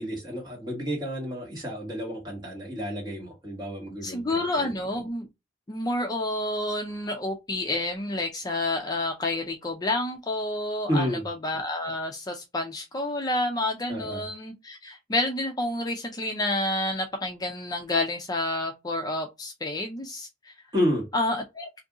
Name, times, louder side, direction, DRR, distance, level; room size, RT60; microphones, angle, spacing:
voice 1, 0.0-4.7 10.9-11.3 13.9-14.3 20.7-21.0, equal, 25° right, 1.6 m, -30 dB
voice 2, 4.0-5.3 5.7-20.5 21.1-21.8, left 1 dB, 20° left, 0.4 m, -29 dB
2.7 x 2.6 x 3.5 m
head